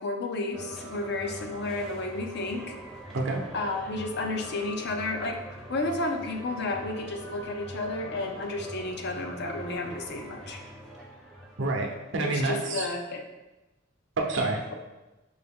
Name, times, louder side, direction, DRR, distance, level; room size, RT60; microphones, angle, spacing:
voice 1, 0.0-2.7 3.5-5.4 5.7-10.6 12.2-13.2, left 2 dB, 60° left, 3 dB, 0.5 m, -32 dB
sound 1, 0.5-12.5, right 1 dB, 5° left, 0.6 m, -43 dB
voice 2, 11.6-12.9 14.2-14.6, right 2 dB, 65° right, 1 dB, 0.7 m, -28 dB
5.3 x 2.3 x 3.5 m, 1.0 s
head